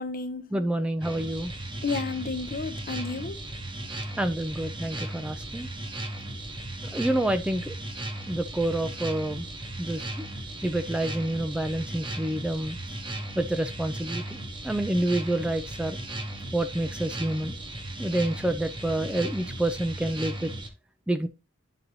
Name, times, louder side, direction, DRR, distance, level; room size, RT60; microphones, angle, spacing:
voice 1, 0.0-0.5 1.8-3.4, left 4 dB, 45° left, 0.7 m, -32 dB
voice 2, 0.5-1.5 4.2-5.7 6.9-7.8 8.3-9.5 9.8-10.3 10.6-12.8 13.4-16.0 16.5-17.6 18.0-20.5 21.1-21.3, right 1 dB, 5° right, 0.4 m, -28 dB
sound 1, 1.0-20.7, right 1 dB, 25° right, 0.9 m, -36 dB
11.0 x 4.0 x 2.8 m
head